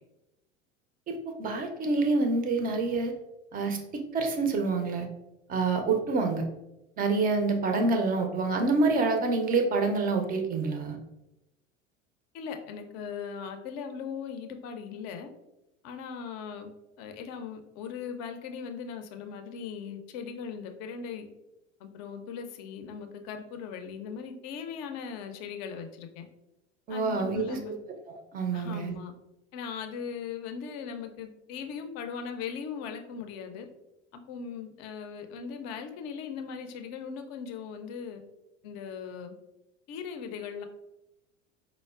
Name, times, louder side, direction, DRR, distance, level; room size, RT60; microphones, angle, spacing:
voice 1, 1.1-3.1 3.5-5.1 5.5-6.5 7.0-11.0 26.9-27.8 28.1-29.0, right 3 dB, 25° right, 4 dB, 0.4 m, -27 dB
voice 2, 12.3-15.3 15.8-16.7 17.0-21.3 21.8-26.3 26.9-27.8 28.5-29.1 29.5-33.7 34.1-38.2 38.6-39.4 39.9-40.7, left 6 dB, 45° left, 7 dB, 0.5 m, -39 dB
4.6 x 2.0 x 2.3 m, 0.92 s
figure-of-eight pair, 80°, 38 cm